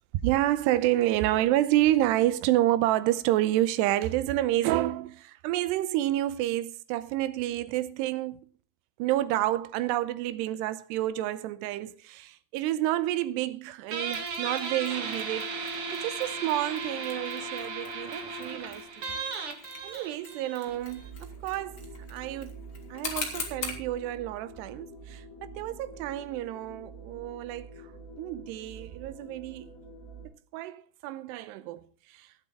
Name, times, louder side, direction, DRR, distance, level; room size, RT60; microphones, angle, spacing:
voice 1, 0.2-8.4 9.0-19.3 19.8-21.8 22.1-22.6 22.9-27.7 28.2-29.8 30.5-32.3, right 14 dB, 80° right, 2.8 m, -29 dB
Guitar, 13.9-21.1, right 4 dB, 50° right, 1.8 m, -36 dB
Mechanisms, 14.1-23.9, left 4 dB, 35° left, 2.5 m, -43 dB
sound 1, 20.6-30.3, right 3 dB, 75° left, 8.9 m, -47 dB
19.0 x 8.0 x 3.7 m
omnidirectional pair, 5.0 m